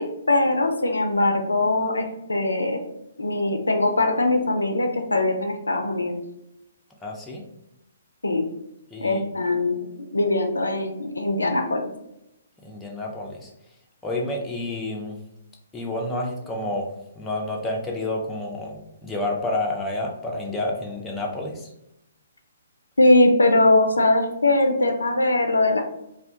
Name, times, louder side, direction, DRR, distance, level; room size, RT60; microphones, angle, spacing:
voice 1, 0.0-2.8 3.2-6.1 8.2-8.4 9.0-11.9 23.0-25.8, left 2 dB, 75° left, 4 dB, 0.4 m, -21 dB
voice 2, 7.0-7.4 8.9-9.2 12.6-13.5 14.0-15.2 15.7-21.7, left 2 dB, 10° left, -1 dB, 0.4 m, -29 dB
2.2 x 2.1 x 2.6 m, 0.83 s
figure-of-eight pair, 125°, 0 cm